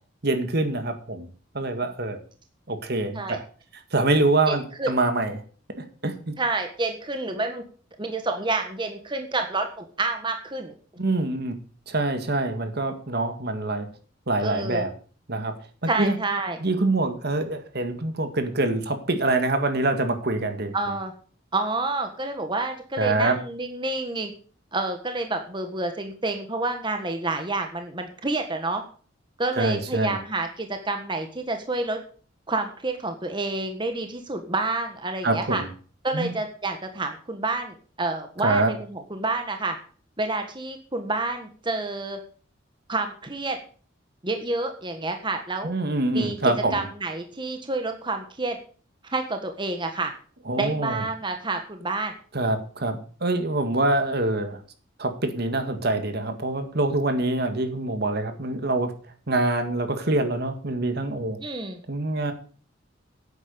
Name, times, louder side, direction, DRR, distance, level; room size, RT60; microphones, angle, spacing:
voice 1, 0.2-1.3 1.5-2.2 2.7-3.4 3.9-5.4 5.8-6.3 11.0-11.6 11.9-13.9 14.3-14.9 15.3-15.5 15.8-16.2 16.6-20.7 23.0-23.4 29.6-30.1 35.2-35.7 36.1-36.3 38.4-38.7 45.6-46.9 50.5-51.0 52.3-54.6 55.0-58.9 59.3-61.4 61.9-62.3, right 2 dB, 55° right, 8 dB, 1.9 m, -25 dB
voice 2, 4.5-4.9 6.4-7.6 8.0-10.7 14.4-14.9 15.9-16.6 20.7-21.1 21.5-24.3 24.7-28.8 29.4-32.0 32.5-35.6 36.0-39.7 40.2-42.2 42.9-43.6 44.2-45.7 46.1-48.6 49.0-50.1 50.6-52.1 61.4-61.8, right 2 dB, 25° right, 5 dB, 1.5 m, -29 dB
10.5 x 9.1 x 6.9 m, 0.42 s
head